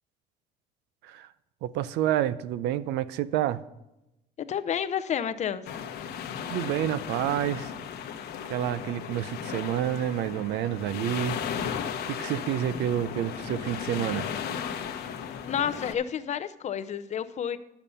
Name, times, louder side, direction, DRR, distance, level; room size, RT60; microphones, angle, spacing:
voice 1, 1.6-3.6 6.5-7.7 8.5-11.4 12.1-14.3, right 12 dB, 85° right, 16 dB, 0.5 m, -29 dB
voice 2, 4.4-5.6 15.5-17.6, left 8 dB, 45° left, 12 dB, 0.5 m, -30 dB
sound 1, 5.6-15.9, left 8 dB, 70° left, 1.0 m, -35 dB
9.2 x 6.9 x 5.5 m, 0.93 s
cardioid pair, 110°, 17 cm